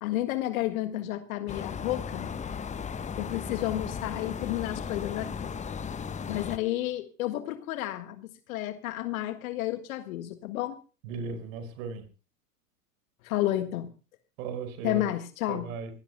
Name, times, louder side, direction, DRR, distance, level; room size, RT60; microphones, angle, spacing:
voice 1, 0.0-2.3 3.2-5.5 6.3-10.8 13.2-13.9 14.8-15.7, left 14 dB, 60° left, 10 dB, 1.8 m, -31 dB
sound 1, 1.5-6.6, left 6 dB, 15° left, 1.0 m, -36 dB
voice 2, 11.0-12.0 14.4-15.0 15.5-15.9, right 5 dB, 55° right, 11 dB, 5.2 m, -36 dB
25.0 x 18.5 x 2.2 m, 0.34 s
hypercardioid pair, 95°, 46 cm